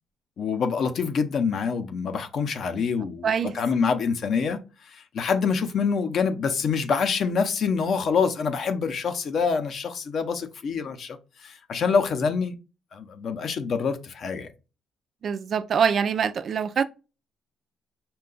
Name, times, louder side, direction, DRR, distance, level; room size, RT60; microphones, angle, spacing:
voice 1, 0.4-12.5 12.9-14.5, left 5 dB, 45° left, 0.6 m, -26 dB
voice 2, 15.2-16.8, right 7 dB, 40° right, 0.3 m, -24 dB
5.5 x 2.3 x 3.8 m
cardioid pair, 145°, 0 cm